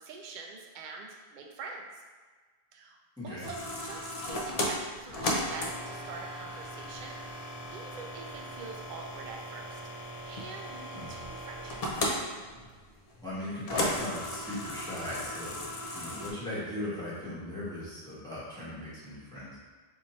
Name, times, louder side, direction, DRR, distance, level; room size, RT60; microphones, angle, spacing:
voice 1, 0.0-2.0 2.7-3.0 3.2-12.1, right 4 dB, 55° right, 1 dB, 0.6 m, -45 dB
voice 2, 3.2-3.5 10.9-11.1 13.2-19.6, left 1 dB, 5° left, -11 dB, 1.2 m, -38 dB
sound 1, 3.4-16.3, left 1 dB, 50° left, 0.5 m, -36 dB
2.8 x 2.6 x 4.1 m, 1.4 s
omnidirectional pair, 1.1 m